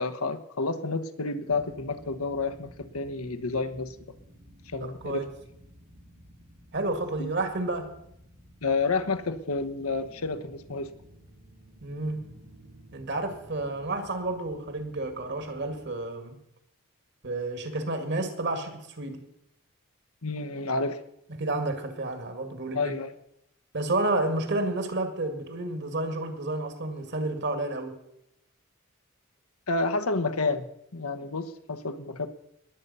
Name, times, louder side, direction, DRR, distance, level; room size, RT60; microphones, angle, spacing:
voice 1, 0.0-3.9 4.7-5.2 7.2-7.3 8.6-10.9 20.2-21.0 22.7-23.1 29.7-30.7 30.9-32.3, left 3 dB, 85° left, 8 dB, 1.1 m, -30 dB
sound 1, 1.5-15.9, equal, 85° right, 3.1 m, -53 dB
voice 2, 4.8-5.3 6.7-8.0 11.8-12.2 12.9-16.4 17.2-19.3 21.3-22.9 23.7-28.0, right 2 dB, 55° right, 7 dB, 2.1 m, -30 dB
20.5 x 8.2 x 5.5 m, 0.79 s
head